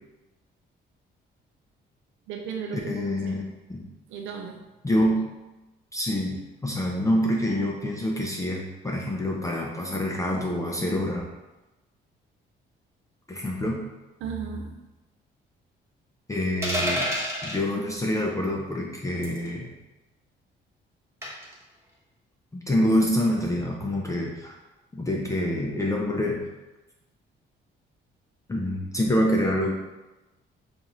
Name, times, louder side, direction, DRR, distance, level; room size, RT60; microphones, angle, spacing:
voice 1, 2.3-3.4 4.1-4.6 14.2-14.8, right 6 dB, 90° right, 2 dB, 0.5 m, -35 dB
voice 2, 2.9-3.4 3.7-3.9 4.8-5.3 5.9-11.3 13.3-13.8 16.3-17.1 17.4-19.7 22.5-24.6 24.9-26.4 28.5-29.7, left 1 dB, 15° left, -2 dB, 0.5 m, -26 dB
sound 1, 16.6-17.6 19.2-19.5 21.2-21.5, equal, 15° right, 1.1 m, -28 dB
3.9 x 2.5 x 2.9 m, 1.0 s
cardioid pair, 90°, 20 cm